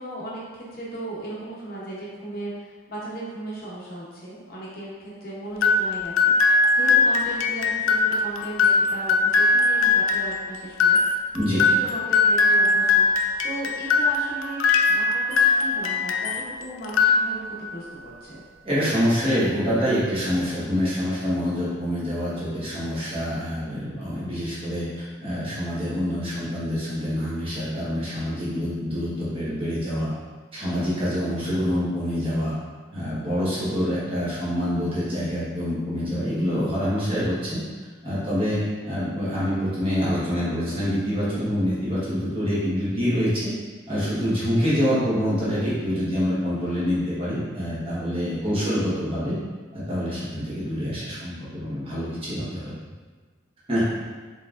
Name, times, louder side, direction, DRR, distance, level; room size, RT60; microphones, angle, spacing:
voice 1, 0.0-11.0 11.5-13.1 13.4-18.4 33.8-34.0 38.5-38.8 48.4-48.6, right 1 dB, 50° left, -6 dB, 0.8 m, -36 dB
sound 1, 5.6-16.5 16.8-17.7, left 4 dB, 90° left, 0.4 m, -21 dB
voice 2, 18.6-30.1 30.5-32.5 32.9-37.6 38.0-43.5 43.9-49.4 49.7-52.7 53.7-53.9, equal, 30° right, -10 dB, 1.2 m, -26 dB
4.3 x 3.4 x 2.5 m, 1.4 s
head